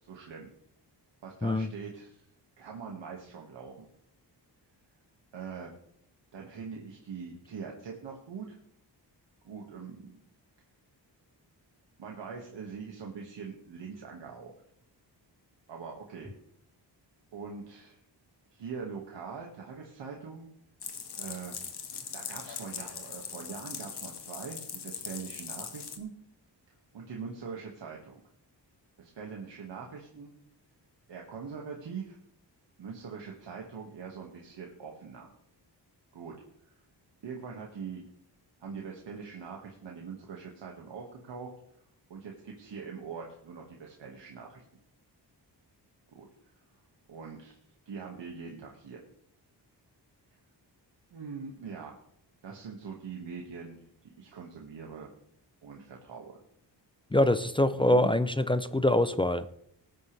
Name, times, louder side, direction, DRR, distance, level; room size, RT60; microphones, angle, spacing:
voice 1, 0.0-0.5 1.2-2.3 2.6-3.9 5.3-5.7 6.3-8.6 9.4-10.2 12.0-14.5 15.7-16.3 17.3-18.0 18.5-20.5 21.2-21.6 22.1-26.1 26.9-28.2 29.0-30.3 31.1-32.2 32.8-35.3 36.1-36.3 36.6-36.8 37.2-38.1 38.6-41.5 42.1-44.6 46.1-46.3 47.1-47.6 47.9-49.0 51.1-51.9 52.4-55.1 55.6-56.4 57.7-58.1, right 5 dB, 75° right, 0 dB, 2.0 m, -42 dB
snow on leaves, 20.8-26.0, left 7 dB, 65° left, 1.7 m, -41 dB
voice 2, 57.1-59.5, left 1 dB, 10° left, 12 dB, 0.4 m, -24 dB
20.0 x 9.5 x 3.4 m, 0.71 s
wide cardioid pair, 155°, 43 cm